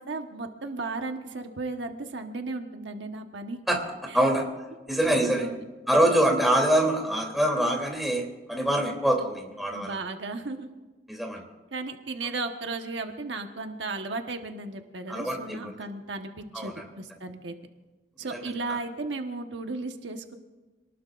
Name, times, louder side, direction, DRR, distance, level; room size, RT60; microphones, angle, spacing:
voice 1, 0.0-3.6 4.1-4.2 5.0-5.6 9.7-10.7 11.7-17.6 18.2-20.3, right 3 dB, 80° right, 4 dB, 1.3 m, -35 dB
voice 2, 3.7-4.5 4.9-5.5 5.9-10.0 11.1-11.4 15.1-15.7 16.5-16.8 18.3-18.4, right 1 dB, ahead, 0 dB, 3.1 m, -25 dB
26.5 x 19.5 x 2.5 m, 1.2 s
head